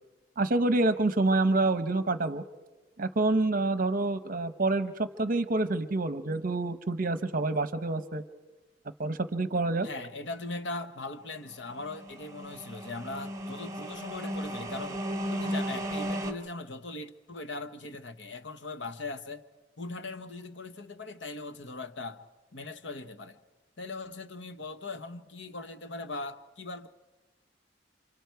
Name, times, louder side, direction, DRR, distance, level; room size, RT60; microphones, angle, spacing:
voice 1, 0.4-2.4 3.0-8.2 9.0-9.9, right 2 dB, 50° right, 0.8 m, -27 dB
voice 2, 9.8-15.0 15.3-19.4 19.8-22.2 22.5-23.4 23.8-26.9, left 2 dB, 85° left, 1.1 m, -40 dB
sound 1, 11.7-16.3, equal, 20° right, 2.0 m, -35 dB
30.0 x 26.5 x 4.7 m
head